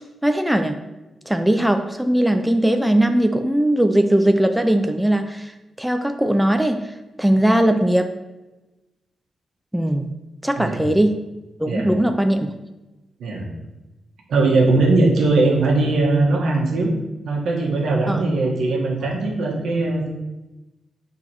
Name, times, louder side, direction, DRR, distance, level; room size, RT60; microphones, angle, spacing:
voice 1, 0.2-0.8 1.3-5.5 5.8-6.8 7.2-8.1 9.7-10.1 10.4-11.2 11.6-12.5 18.1-18.2, right 1 dB, 5° right, 6 dB, 0.3 m, -19 dB
voice 2, 14.3-16.9 17.2-20.1, right 2 dB, 80° right, -1 dB, 1.4 m, -19 dB
7.1 x 3.8 x 4.5 m, 1.1 s
wide cardioid pair, 160°, 0 cm